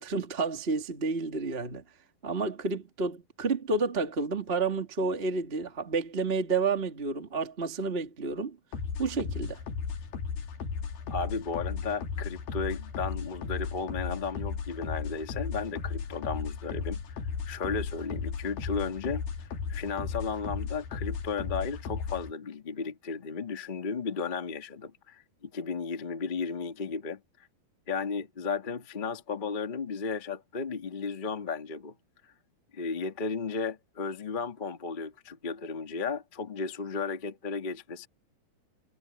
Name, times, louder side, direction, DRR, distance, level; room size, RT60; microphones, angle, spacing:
voice 1, 0.0-1.8 2.2-8.6 9.0-9.6, right 4 dB, 20° right, 1.9 m, -30 dB
sound 1, 8.7-22.3, left 6 dB, 70° left, 4.5 m, -35 dB
voice 2, 11.1-27.5 27.9-31.9 32.2-32.3 32.7-38.1, left 5 dB, 40° left, 0.6 m, -34 dB
omnidirectional pair, 4.4 m